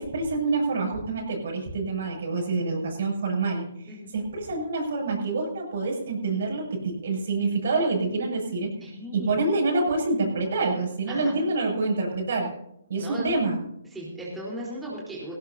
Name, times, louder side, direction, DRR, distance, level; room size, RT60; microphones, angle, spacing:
voice 1, 0.0-3.7 4.1-8.7 9.1-12.5 12.9-13.6, right 3 dB, 60° right, 0 dB, 7.6 m, -26 dB
voice 2, 8.8-9.4 11.1-11.3 13.0-13.2 13.9-15.3, equal, 5° right, -5 dB, 4.2 m, -36 dB
18.5 x 17.0 x 2.9 m, 0.77 s
hypercardioid pair, 150°, 0 cm